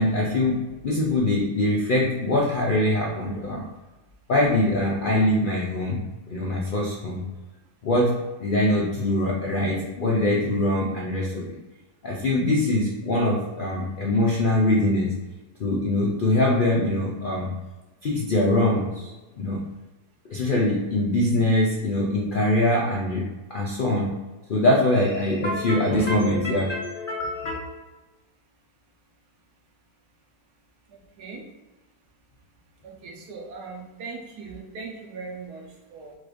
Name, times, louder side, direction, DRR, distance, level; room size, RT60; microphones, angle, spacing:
voice 1, 0.0-3.6 4.3-7.2 7.8-11.6 12.0-15.1 15.6-17.5 18.0-19.6 20.2-24.1 24.5-27.6, left 1 dB, 80° left, -2 dB, 0.4 m, -23 dB
voice 2, 30.9-31.5 32.8-36.2, right 4 dB, 75° right, 1 dB, 1.4 m, -39 dB
4.2 x 2.5 x 4.8 m, 1.1 s
omnidirectional pair, 1.7 m